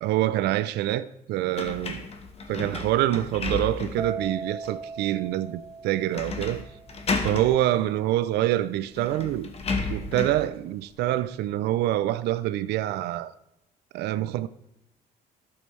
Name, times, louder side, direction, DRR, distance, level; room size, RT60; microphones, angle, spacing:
voice 1, 0.0-2.1 2.5-6.6 7.2-9.5 9.9-13.3 13.9-14.5, right 14 dB, 80° right, 0.5 m, -26 dB
sound 1, 1.5-4.1 4.6-4.7 6.1-6.6 6.9-7.5 8.5-8.6 8.9-10.4, left 4 dB, 35° left, 1.2 m, -32 dB
sound 2, 4.0-11.5 11.8-12.3, right 4 dB, ahead, 0.7 m, -40 dB
12.5 x 7.0 x 3.2 m
cardioid pair, 110°, 17 cm